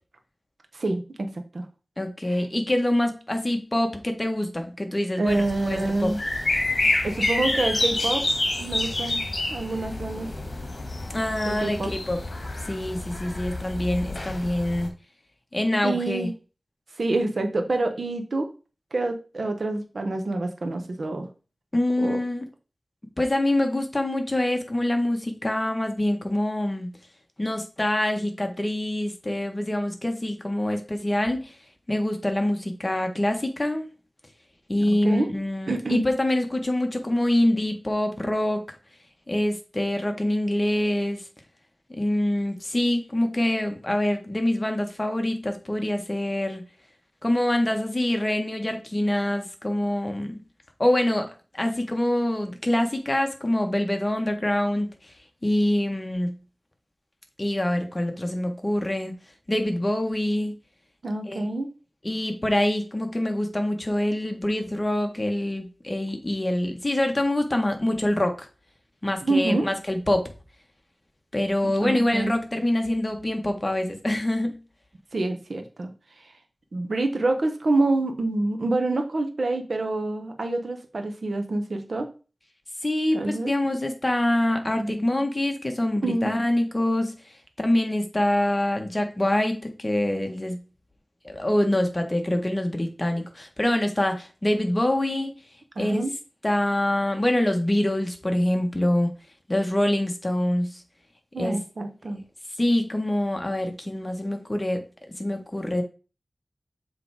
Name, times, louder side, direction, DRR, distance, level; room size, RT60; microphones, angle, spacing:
voice 1, 0.7-1.6 2.3-2.4 5.2-6.2 6.8-8.2 8.6-9.2 9.5-10.3 11.5-11.9 15.8-16.3 17.0-18.5 18.9-21.3 22.0-22.2 34.8-35.3 35.7-36.1 61.0-61.7 69.2-69.7 71.6-72.4 75.1-75.9 76.7-82.1 83.1-83.5 84.8-85.2 86.0-86.4 95.8-96.1 101.3-102.2, right 2 dB, 70° right, 6 dB, 1.2 m, -27 dB
voice 2, 2.0-6.1 11.1-12.2 12.6-14.9 15.5-16.3 21.7-22.4 23.2-26.9 27.4-31.5 31.9-33.9 34.7-38.6 39.3-41.2 42.0-46.6 47.2-50.4 50.8-54.9 55.4-56.3 57.4-59.1 59.5-60.5 61.3-61.4 62.0-68.5 69.0-70.3 71.3-74.6 82.8-87.1 87.6-90.6 91.2-95.3 95.8-96.0 96.4-99.1 99.5-100.8 101.4-101.6 102.6-104.8 105.2-105.8, left 1 dB, 30° left, 4 dB, 1.4 m, -25 dB
sound 1, 5.3-14.9, left 2 dB, 55° left, 1.6 m, -28 dB
7.3 x 3.4 x 4.8 m, 0.34 s
wide cardioid pair, 55°, 0 cm